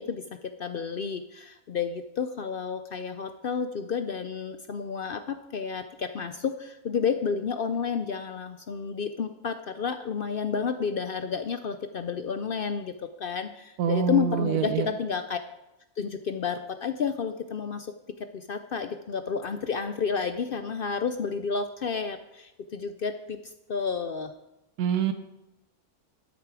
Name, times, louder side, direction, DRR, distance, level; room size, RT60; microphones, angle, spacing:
voice 1, 0.0-15.4 16.0-17.9 18.3-23.4 23.7-24.3, left 6 dB, 65° left, 9 dB, 0.5 m, -31 dB
voice 2, 13.8-14.9 24.8-25.1, right 8 dB, 85° right, 9 dB, 1.2 m, -25 dB
12.0 x 8.8 x 4.8 m, 0.94 s
omnidirectional pair, 1.6 m